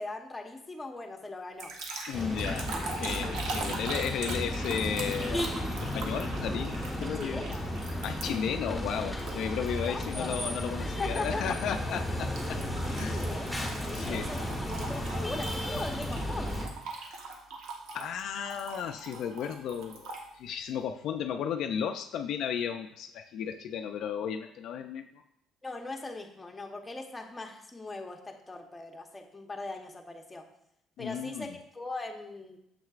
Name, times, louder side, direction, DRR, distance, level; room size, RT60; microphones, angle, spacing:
voice 1, 0.0-1.8 7.0-7.7 9.8-10.4 10.8-11.6 12.8-16.6 25.6-30.5 31.0-32.6, left 2 dB, 15° left, 3 dB, 0.9 m, -40 dB
sound 1, 1.6-8.6 9.2-10.1 10.5-10.8 12.4-20.3, right 3 dB, 80° right, 1.0 m, -41 dB
voice 2, 2.1-2.7 3.0-5.4 5.8-7.4 8.0-12.6 12.9-13.2 13.9-14.3 17.9-25.2 31.0-31.6, left 8 dB, 70° left, 6 dB, 0.4 m, -34 dB
sound 2, 2.1-16.7, left 1 dB, ahead, 1.3 m, -34 dB
6.7 x 6.2 x 2.4 m, 0.75 s
cardioid pair, 100°, 0 cm